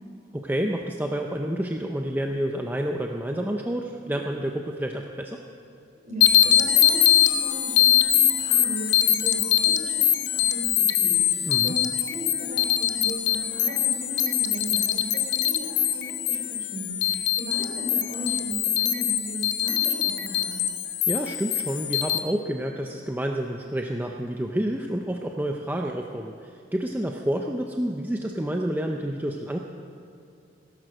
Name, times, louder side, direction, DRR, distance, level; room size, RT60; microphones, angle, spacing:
voice 1, 0.3-5.4 11.5-11.7 21.1-29.6, right 1 dB, 10° right, 2 dB, 0.6 m, -29 dB
voice 2, 6.0-20.5, equal, 45° right, 0 dB, 3.7 m, -36 dB
sound 1, 6.2-22.2, left 10 dB, 65° left, 0.8 m, -23 dB
17.5 x 11.0 x 6.4 m, 2.6 s
head